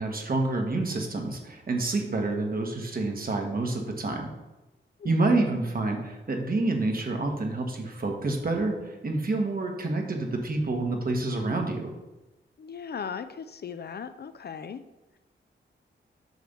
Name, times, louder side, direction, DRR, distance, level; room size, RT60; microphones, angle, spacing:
voice 1, 0.0-4.3 5.0-11.9, right 2 dB, 45° right, 3 dB, 1.3 m, -28 dB
voice 2, 12.6-14.8, left 6 dB, 55° left, 11 dB, 0.4 m, -37 dB
9.3 x 3.4 x 6.6 m, 1.1 s
wide cardioid pair, 115°, 20 cm